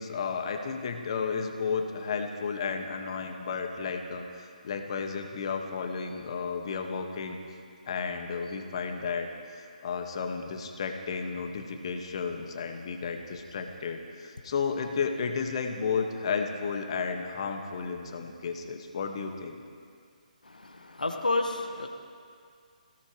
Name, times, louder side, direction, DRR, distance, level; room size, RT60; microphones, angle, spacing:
voice 1, 0.0-7.4 7.9-19.6, left 5 dB, 40° left, 5 dB, 1.7 m, -33 dB
voice 2, 20.4-21.9, left 2 dB, 75° left, 4 dB, 1.4 m, -30 dB
25.5 x 17.0 x 3.2 m, 2.2 s
figure-of-eight pair, 140°, 4 cm